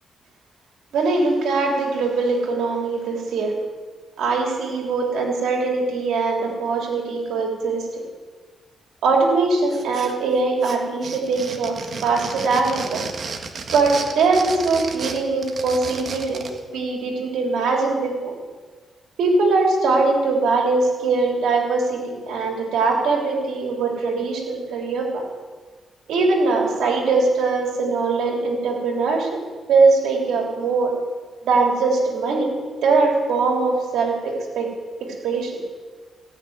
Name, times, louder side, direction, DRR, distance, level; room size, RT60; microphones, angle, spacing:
voice 1, 0.9-3.5 4.2-8.0 9.0-11.8 12.0-13.0 13.7-18.3 19.2-25.2 26.1-29.3 29.7-30.9 31.4-32.5 32.8-34.7 35.0-35.6, right 3 dB, 85° right, 0 dB, 3.2 m, -21 dB
sound 1, 9.7-10.3 10.6-16.6, right 5 dB, 50° right, 1.7 m, -33 dB
18.5 x 6.7 x 9.5 m, 1.5 s
cardioid pair, 105°, 0 cm